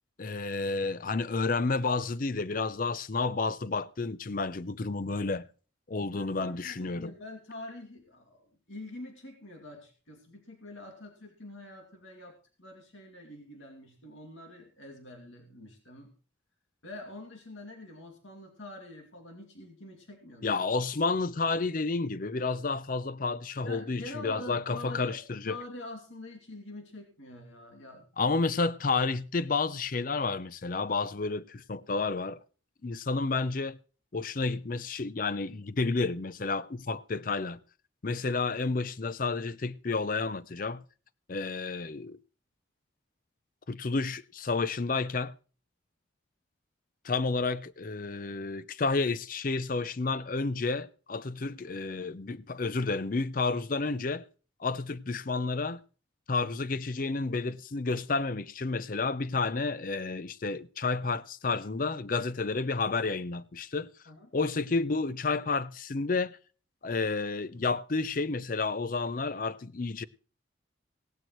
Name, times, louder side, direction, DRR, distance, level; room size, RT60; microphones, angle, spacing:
voice 1, 0.2-5.5 5.9-7.1 20.4-25.6 28.2-32.4 32.8-33.8 34.1-37.6 38.0-40.8 41.3-42.2 43.7-45.3 47.0-54.2 54.6-55.8 56.3-63.9 64.3-66.4 66.8-70.0, left 3 dB, 45° left, 0.5 m, -30 dB
voice 2, 6.0-16.1 16.8-20.8 23.6-25.2 25.5-28.4 64.1-64.3, left 1 dB, 85° left, 2.4 m, -46 dB
17.5 x 12.0 x 3.1 m
head